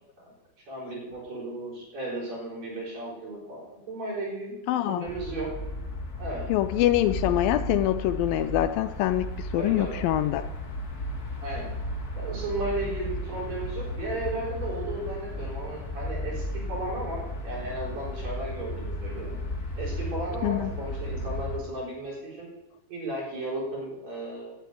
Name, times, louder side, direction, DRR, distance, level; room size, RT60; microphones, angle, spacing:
voice 1, 0.7-4.6 4.8-5.5 6.2-6.5 9.6-10.0 11.4-11.7 12.2-19.4 19.8-22.5 22.9-24.5, right 2 dB, 45° right, -4 dB, 5.3 m, -35 dB
voice 2, 4.7-5.0 6.5-10.5 20.4-20.7, left 14 dB, 80° left, 11 dB, 2.2 m, -25 dB
sound 1, 5.1-21.6, left 1 dB, 35° left, 1.5 m, -34 dB
11.5 x 7.1 x 9.2 m, 0.97 s
omnidirectional pair, 4.2 m